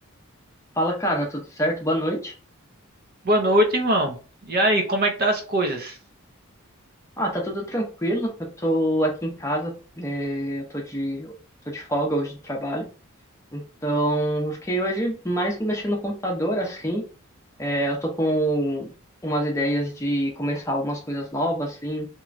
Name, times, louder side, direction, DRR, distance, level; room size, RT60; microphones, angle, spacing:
voice 1, 0.8-2.3 7.2-8.3 8.6-11.3 11.7-12.9 13.5-17.0 17.6-18.9 19.2-22.1, equal, 15° left, 0 dB, 0.6 m, -26 dB
voice 2, 3.2-4.2 4.5-6.0, right 1 dB, 45° right, 4 dB, 0.5 m, -21 dB
2.9 x 2.2 x 2.4 m, 0.35 s
head